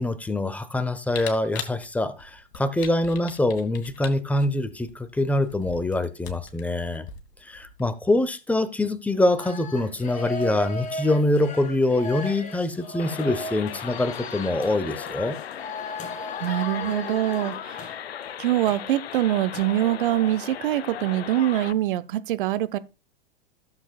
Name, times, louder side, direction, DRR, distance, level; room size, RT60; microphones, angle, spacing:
voice 1, 0.0-7.1 7.4-15.4, left 1 dB, 5° left, 0.8 m, -24 dB
Camera, 1.1-7.9, left 7 dB, 55° left, 2.0 m, -41 dB
sound 1, 9.4-18.8 19.1-19.2 19.5-19.6, left 2 dB, 25° left, 2.2 m, -36 dB
sound 2, 13.0-21.7, left 10 dB, 80° left, 0.5 m, -37 dB
voice 2, 16.4-18.0 18.4-22.8, right 13 dB, 55° right, 0.7 m, -24 dB
15.0 x 7.2 x 2.3 m
figure-of-eight pair, 100°, 30 cm